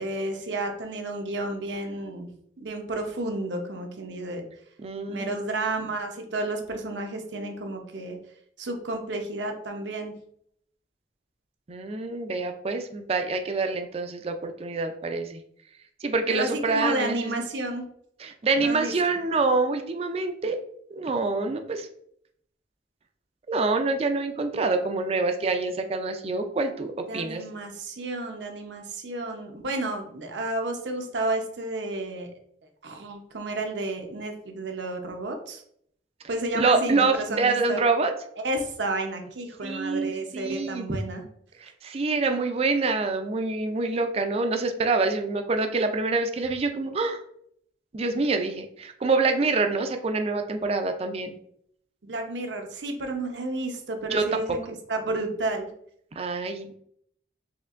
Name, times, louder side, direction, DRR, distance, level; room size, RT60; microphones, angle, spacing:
voice 1, 0.0-2.3 2.6-4.4 5.1-8.2 8.6-10.2 16.3-17.8 18.5-19.2 27.1-32.3 32.8-35.6 36.3-37.8 38.4-41.2 52.0-54.6 54.9-55.7, right 2 dB, 80° right, 3 dB, 0.7 m, -31 dB
voice 2, 4.8-5.3 11.7-15.4 16.0-17.4 18.2-20.6 20.9-21.9 23.5-27.4 36.5-38.1 39.6-41.0 41.6-47.2 47.9-51.4 54.1-54.4 56.2-56.7, right 3 dB, 35° right, 6 dB, 0.4 m, -26 dB
4.3 x 3.2 x 2.5 m, 0.67 s
head